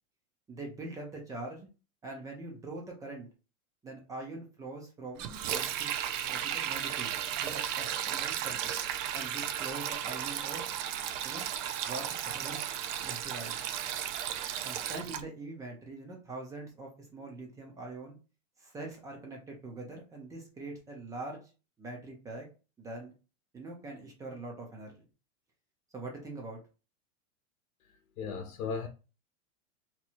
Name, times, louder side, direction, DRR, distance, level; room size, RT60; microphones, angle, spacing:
voice 1, 0.5-1.7 2.0-3.3 3.8-5.9 6.2-7.1 7.4-8.6 9.1-10.6 11.2-11.5 11.8-12.7 13.0-13.6 14.6-18.2 18.6-21.4 21.8-22.5 22.8-23.1 23.5-24.9 25.9-26.6, right 2 dB, 10° right, 0.4 m, -43 dB
Sink (filling or washing), 5.2-15.2, right 10 dB, 65° right, 0.6 m, -34 dB
voice 2, 28.2-28.9, left 5 dB, 80° left, 0.8 m, -35 dB
2.9 x 2.3 x 4.2 m
supercardioid pair, 150°, 42 cm